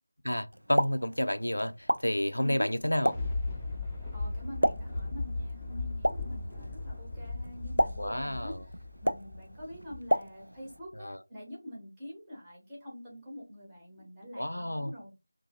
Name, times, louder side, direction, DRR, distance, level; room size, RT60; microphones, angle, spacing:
voice 1, 0.2-3.1 8.0-8.6 11.0-11.2 14.4-14.9, left 1 dB, 75° left, 0.3 m, -30 dB
Explosion, 0.5-10.8, equal, 80° right, 0.3 m, -34 dB
voice 2, 2.4-2.7 4.1-15.1, equal, 10° right, 0.9 m, -45 dB
Thunder, 2.8-10.2 10.7-10.8, left 3 dB, 5° left, 0.5 m, -37 dB
2.7 x 2.5 x 2.5 m
figure-of-eight pair, 165°, 0 cm